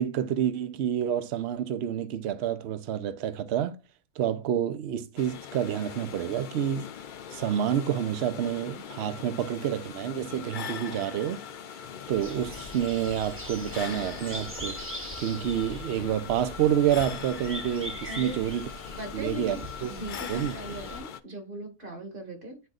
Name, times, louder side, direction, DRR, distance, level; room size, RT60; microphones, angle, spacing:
voice 1, 0.0-3.8 4.2-6.9 7.3-11.4 12.1-14.8 15.2-18.7 19.1-19.6 19.8-19.9 20.3-20.5, right 10 dB, 60° right, 0.8 m, -28 dB
sound 1, 5.2-21.2, left 8 dB, 70° left, 0.4 m, -41 dB
sound 2, 12.1-21.0, equal, 10° right, 0.8 m, -41 dB
voice 2, 18.1-18.5 19.0-22.6, equal, 40° right, 1.8 m, -39 dB
10.5 x 3.8 x 2.4 m
omnidirectional pair, 1.5 m